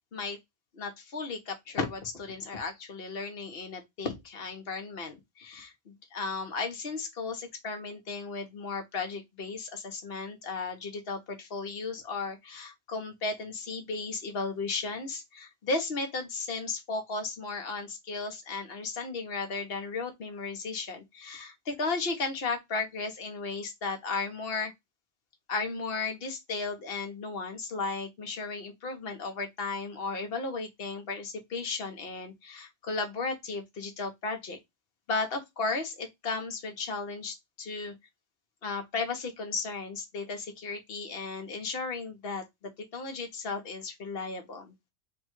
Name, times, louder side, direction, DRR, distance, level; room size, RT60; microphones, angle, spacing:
voice 1, 0.7-24.7 25.5-34.6 35.1-37.9 38.6-44.7, left 4 dB, 55° left, 1.2 m, -35 dB
3.5 x 2.3 x 4.4 m
omnidirectional pair, 1.2 m